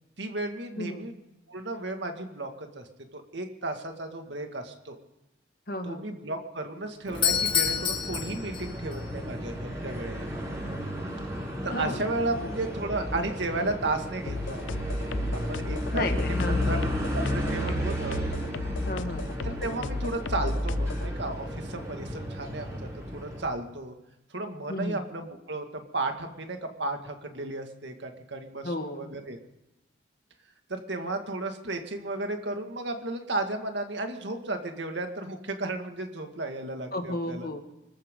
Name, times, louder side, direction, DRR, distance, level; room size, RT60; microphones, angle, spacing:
voice 1, 0.2-1.1 1.5-2.9 3.1-5.0 5.8-10.3 11.6-14.8 15.3-16.3 16.6-18.2 19.4-23.9 24.3-29.4 30.7-37.5, right 2 dB, 70° right, 5 dB, 2.0 m, -34 dB
voice 2, 0.8-1.1 5.7-6.1 11.7-12.0 12.4-12.5 15.9-17.0 18.8-19.3 24.7-25.0 28.6-29.1 36.9-37.6, left 1 dB, 50° left, 6 dB, 1.7 m, -33 dB
Doorbell, 7.1-9.0, left 8 dB, 25° left, 1.9 m, -27 dB
sound 1, 7.1-23.4, equal, 15° right, 5.9 m, -33 dB
sound 2, 14.3-21.1, left 4 dB, 90° left, 0.7 m, -36 dB
25.0 x 14.0 x 3.8 m, 0.96 s
head